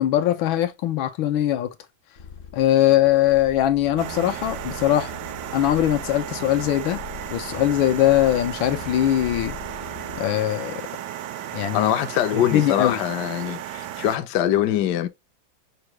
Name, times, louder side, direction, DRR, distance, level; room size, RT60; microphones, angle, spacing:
voice 1, 0.0-1.7 2.5-5.1 5.5-7.0 7.3-9.5 10.1-10.8 11.5-11.9 12.3-13.0, left 12 dB, 85° left, 1.5 m, -21 dB
sound 1, 2.2-10.2, left 6 dB, 50° left, 0.7 m, -41 dB
sound 2, 4.0-14.2, right 11 dB, 75° right, 1.0 m, -34 dB
voice 2, 11.7-15.1, left 11 dB, 70° left, 1.1 m, -23 dB
5.9 x 2.3 x 3.0 m
omnidirectional pair, 2.2 m